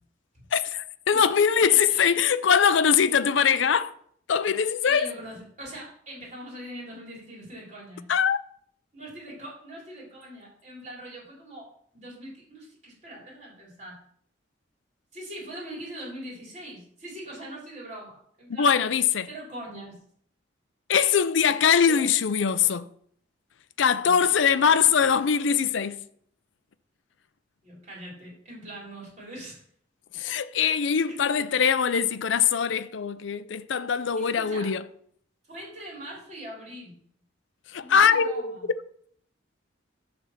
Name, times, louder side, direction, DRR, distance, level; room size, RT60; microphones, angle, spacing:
voice 1, 0.5-3.9 4.3-5.1 8.1-8.4 18.6-19.3 20.9-22.9 23.8-26.0 30.1-34.8 37.7-38.6, left 7 dB, 75° left, 0.5 m, -22 dB
voice 2, 4.8-8.0 8.9-14.0 15.1-19.0 19.3-20.0 21.9-22.0 23.8-24.3 27.6-29.6 30.6-30.7 31.1-31.3 34.2-34.7 35.5-36.9 37.8-38.7, right 1 dB, 40° right, 3.5 m, -42 dB
10.5 x 3.5 x 7.1 m
head